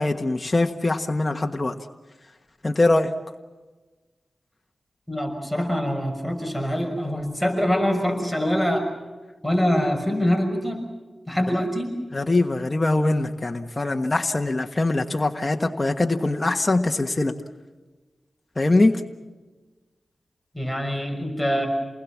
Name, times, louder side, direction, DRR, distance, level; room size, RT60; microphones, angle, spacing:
voice 1, 0.0-1.8 2.6-3.1 12.1-17.3 18.6-19.0, left 2 dB, 30° left, 3 dB, 1.5 m, -22 dB
voice 2, 5.1-8.9 9.4-10.8 11.3-11.9 20.5-21.7, equal, ahead, 4 dB, 6.0 m, -24 dB
29.0 x 20.5 x 7.4 m, 1.3 s
cardioid pair, 55°, 0 cm